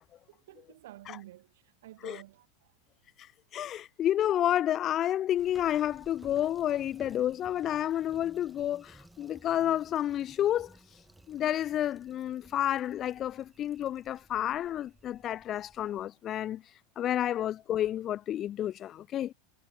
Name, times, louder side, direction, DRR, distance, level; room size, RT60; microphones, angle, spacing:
voice 1, 0.3-2.7, right 15 dB, 75° right, 4.8 m, -51 dB
voice 2, 3.5-10.7 11.3-16.6 17.0-19.3, left 11 dB, 25° left, 0.7 m, -30 dB
sound 1, 5.4-16.0, right 1 dB, 5° right, 7.3 m, -57 dB
supercardioid pair, 155°, 0 cm